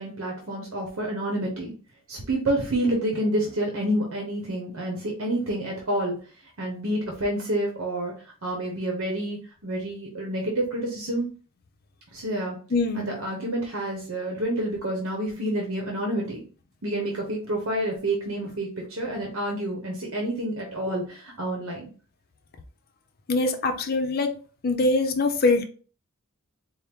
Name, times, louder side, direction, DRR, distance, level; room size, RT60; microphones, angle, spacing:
voice 1, 0.0-1.7 2.1-6.2 6.6-8.1 8.4-11.3 12.1-12.6 12.9-16.4 16.8-21.9, right 1 dB, 80° right, 0.9 m, -28 dB
voice 2, 12.7-13.1 23.3-24.3 24.6-25.7, left 3 dB, 50° left, 0.5 m, -23 dB
4.4 x 2.1 x 3.5 m
head